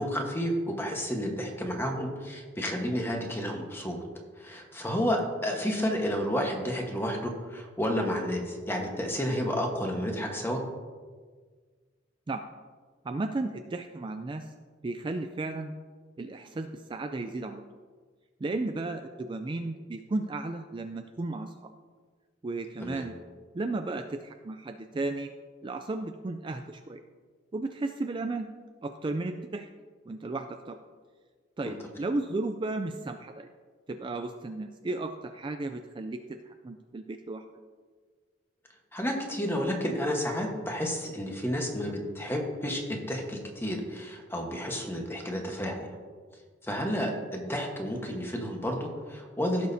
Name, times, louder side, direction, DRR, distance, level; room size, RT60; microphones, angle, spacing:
voice 1, 0.0-4.0 4.4-10.6 22.8-23.1 31.6-31.7 38.9-45.9 46.6-49.7, equal, 10° left, 1 dB, 1.2 m, -31 dB
voice 2, 13.0-14.5 14.8-15.7 16.2-17.6 18.4-21.7 22.4-23.2 23.5-25.3 25.6-27.0 27.5-28.5 28.8-29.7 30.1-30.8 31.6-33.5 33.9-37.4, right 2 dB, 25° right, 6 dB, 0.3 m, -34 dB
16.5 x 6.4 x 2.7 m, 1.5 s
head